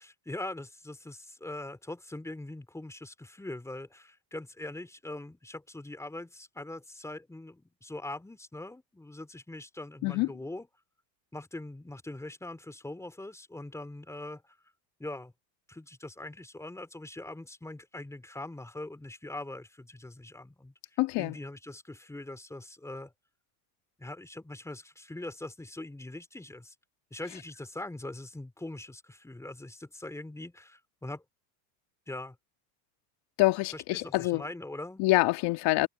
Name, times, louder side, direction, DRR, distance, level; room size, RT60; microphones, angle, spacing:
voice 1, 0.0-10.7 11.3-14.6 15.0-15.3 15.7-23.1 24.0-26.7 27.1-31.2 32.1-32.4 33.7-35.0, left 2 dB, 5° left, 3.3 m, -42 dB
voice 2, 21.0-21.4 33.4-34.4 35.0-35.9, left 20 dB, 60° left, 2.3 m, -26 dB
supercardioid pair, 125°, 46 cm